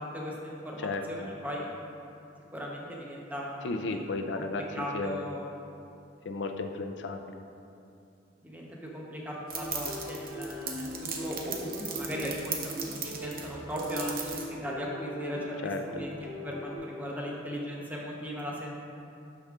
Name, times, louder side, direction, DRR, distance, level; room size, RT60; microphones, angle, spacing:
voice 1, 0.0-1.7 2.5-4.0 4.3-5.5 8.4-15.4 15.9-18.7, equal, 10° right, -3 dB, 0.9 m, -38 dB
voice 2, 0.8-1.3 3.6-5.2 6.2-7.4 15.6-16.1, left 3 dB, 75° left, 5 dB, 0.5 m, -34 dB
sound 1, 9.5-16.8, equal, 20° left, 1.2 m, -41 dB
sound 2, 9.5-14.5, right 6 dB, 50° right, 0.8 m, -38 dB
12.0 x 5.1 x 2.4 m, 2.6 s
head